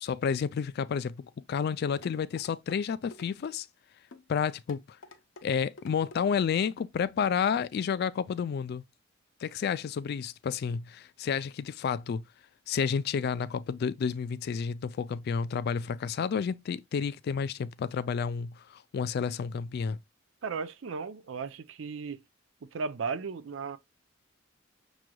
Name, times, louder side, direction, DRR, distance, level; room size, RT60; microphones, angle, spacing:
voice 1, 0.0-3.7 4.3-4.8 5.4-8.8 9.4-12.2 12.7-20.0, left 6 dB, 55° left, 0.3 m, -30 dB
sound 1, 2.0-2.8 3.1-3.5 4.1-4.3 4.7-5.5 5.8-6.2 6.8-6.9 7.4-7.5, left 3 dB, 80° left, 0.7 m, -49 dB
voice 2, 20.4-22.2 22.6-23.8, right 5 dB, 70° right, 0.5 m, -35 dB
6.1 x 3.1 x 2.2 m
head